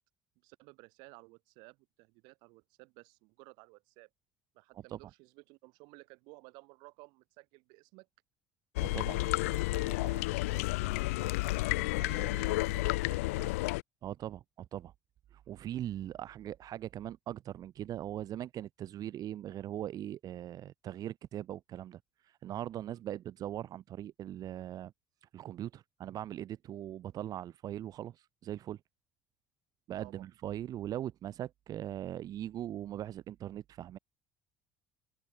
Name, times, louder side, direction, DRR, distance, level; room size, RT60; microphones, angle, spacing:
voice 1, 0.4-4.1 4.5-8.1 9.0-11.4 12.0-13.6 22.9-23.0 30.0-30.3, right 27 dB, 75° right, 5.3 m, -55 dB
sound 1, 8.8-13.8, left 21 dB, 85° left, 0.9 m, -31 dB
voice 2, 8.8-9.2 12.2-12.3 14.0-14.9 15.3-24.9 25.2-28.8 29.9-34.0, right 11 dB, 55° right, 1.4 m, -40 dB
open air
hypercardioid pair, 70°, 7 cm